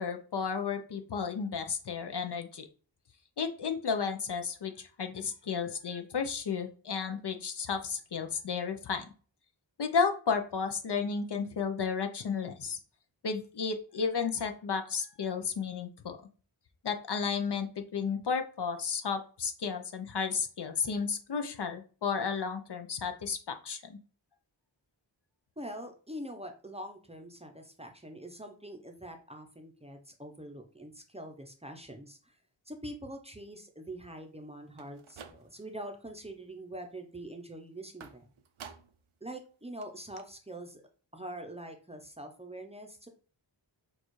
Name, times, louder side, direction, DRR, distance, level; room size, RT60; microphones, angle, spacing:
voice 1, 0.0-2.7 3.4-9.1 9.8-12.8 13.2-16.2 16.8-24.0, left 5 dB, 60° left, 6 dB, 0.6 m, -33 dB
voice 2, 25.6-32.3 32.7-38.3 39.2-40.8 41.1-43.1, right 1 dB, 15° right, 4 dB, 0.6 m, -44 dB
sound 1, 34.7-35.8 36.2-36.7 38.0-39.1 39.5-39.6 39.8-39.9 40.2-40.3, right 7 dB, 80° right, 0.6 m, -51 dB
6.4 x 2.4 x 3.1 m, 0.39 s
wide cardioid pair, 75°, 47 cm